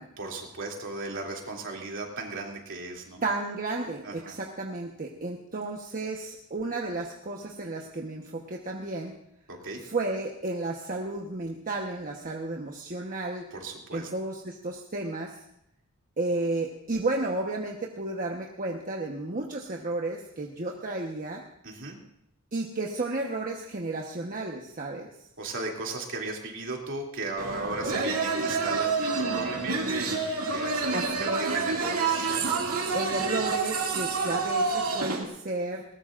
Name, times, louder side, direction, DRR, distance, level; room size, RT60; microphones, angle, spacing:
voice 1, 0.2-3.2 4.0-4.4 9.5-9.8 13.5-14.1 21.6-22.0 25.4-33.0 34.3-34.4, right 2 dB, 60° right, 0 dB, 2.9 m, -36 dB
voice 2, 3.2-9.1 9.8-13.5 13.9-15.4 16.2-21.4 22.5-25.1 30.9-31.4 32.9-35.8, right 2 dB, 40° right, 0 dB, 1.2 m, -32 dB
sound 1, 27.4-35.2, right 4 dB, 90° right, 2.4 m, -28 dB
20.5 x 18.5 x 2.6 m, 0.76 s
head